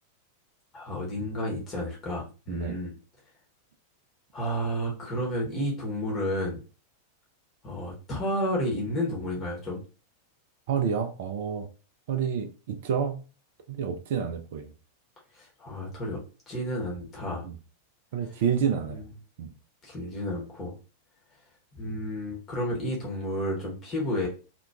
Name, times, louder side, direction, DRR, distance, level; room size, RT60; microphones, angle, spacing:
voice 1, 0.7-2.9 4.3-6.6 7.6-9.8 15.4-16.2 16.5-17.5 18.9-19.0 19.8-20.7 21.7-24.3, equal, 25° left, 0.9 m, -31 dB
voice 2, 2.5-2.8 10.7-11.7 12.1-13.2 13.7-14.7 17.4-17.5 18.1-19.0 19.4-19.5, right 7 dB, 55° right, 0.3 m, -29 dB
2.8 x 2.2 x 2.3 m
figure-of-eight pair, 90°, 0 cm